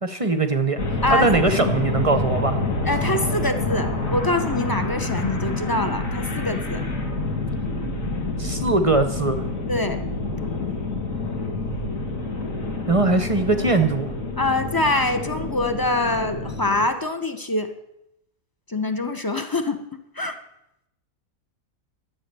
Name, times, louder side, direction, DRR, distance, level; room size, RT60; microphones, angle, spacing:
voice 1, 0.0-0.8 1.1-2.6 8.4-9.4 12.9-14.1, right 3 dB, 35° right, 8 dB, 0.6 m, -21 dB
sound 1, 0.8-16.8, left 2 dB, 70° left, 2.4 m, -27 dB
voice 2, 2.8-6.8 9.7-10.0 14.4-17.7 18.7-19.8 20.1-20.4, left 2 dB, 20° left, 8 dB, 0.7 m, -24 dB
12.5 x 7.9 x 6.8 m, 0.83 s
omnidirectional pair, 1.4 m